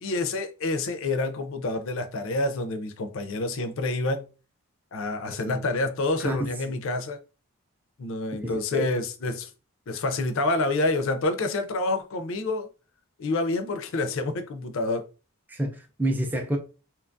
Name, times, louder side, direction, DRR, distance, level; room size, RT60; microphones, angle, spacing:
voice 1, 0.0-4.3 4.9-7.2 8.0-9.5 9.9-12.7 13.2-15.1, left 2 dB, 60° left, 0.4 m, -28 dB
voice 2, 5.2-5.6 6.2-6.5 8.4-8.9 15.5-16.6, right 1 dB, 10° right, 0.3 m, -29 dB
2.8 x 2.3 x 2.5 m
head